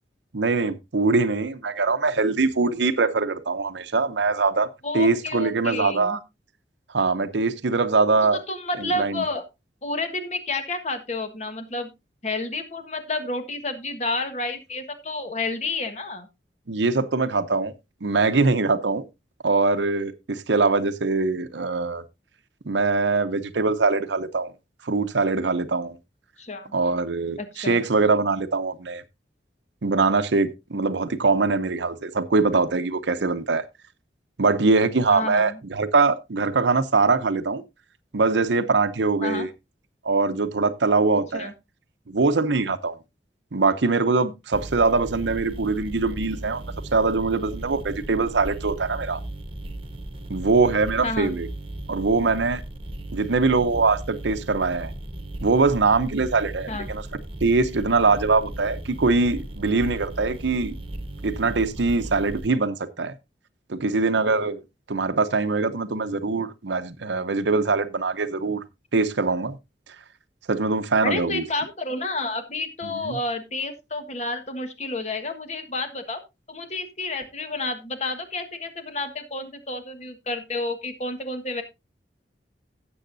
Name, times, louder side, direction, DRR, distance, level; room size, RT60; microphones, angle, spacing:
voice 1, 0.3-4.7 4.9-6.2 6.9-8.4 8.8-9.2 16.7-17.7 18.0-19.0 19.4-22.0 22.7-24.5 24.8-26.0 26.7-29.0 29.8-33.6 34.4-37.6 38.1-39.5 40.0-41.5 42.1-42.9 43.5-46.6 46.9-49.2 50.3-51.5 51.9-52.6 53.1-54.9 55.4-57.0 57.4-60.7 61.2-63.1 63.7-64.6 64.9-68.6 68.9-69.6 70.5-71.4 72.9-73.2, right 3 dB, 85° right, 0.8 m, -22 dB
voice 2, 4.8-6.2 8.3-9.4 9.8-11.9 12.2-16.3 26.4-26.7 27.4-27.8 35.1-35.6 39.2-39.5 41.3-41.5 51.0-51.3 56.7-56.9 71.0-76.2 76.5-81.6, left 2 dB, 40° left, 1.4 m, -30 dB
sound 1, 44.5-62.5, right 1 dB, 30° right, 1.2 m, -36 dB
17.0 x 7.1 x 2.6 m
head